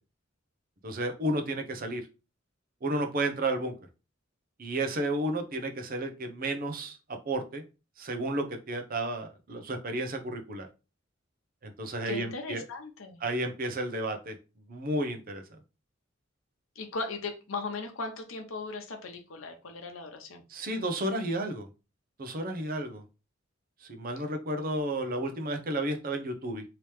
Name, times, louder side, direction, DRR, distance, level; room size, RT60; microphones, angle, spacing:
voice 1, 0.8-2.0 2.8-3.7 4.6-7.0 7.3-7.6 8.0-10.7 11.6-12.6 13.2-14.4 14.7-15.4 20.5-21.7 22.2-23.0 23.8-26.6, right 1 dB, 45° right, 6 dB, 0.7 m, -32 dB
voice 2, 12.0-13.2 16.8-20.4, left 3 dB, 90° left, 5 dB, 0.8 m, -38 dB
3.1 x 2.9 x 3.3 m, 0.30 s
head